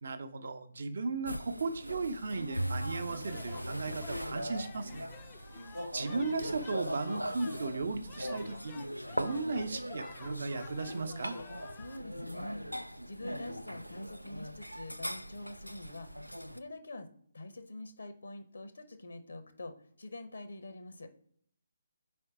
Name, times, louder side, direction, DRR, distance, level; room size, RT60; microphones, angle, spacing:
voice 1, 0.0-5.1 5.9-8.7 9.2-11.4, right 3 dB, 55° right, 11 dB, 0.7 m, -36 dB
sound 1, 1.3-16.6, equal, 90° right, 0.4 m, -41 dB
Bowed string instrument, 2.6-5.1, right 1 dB, 85° left, 1.2 m, -40 dB
sound 2, 3.1-12.0, left 10 dB, 20° left, 0.4 m, -54 dB
voice 2, 11.7-12.6 13.1-16.1 16.5-17.1 17.3-21.1, left 2 dB, 65° left, 8 dB, 0.8 m, -45 dB
4.5 x 4.3 x 4.9 m, 0.62 s
figure-of-eight pair, 140°, 0 cm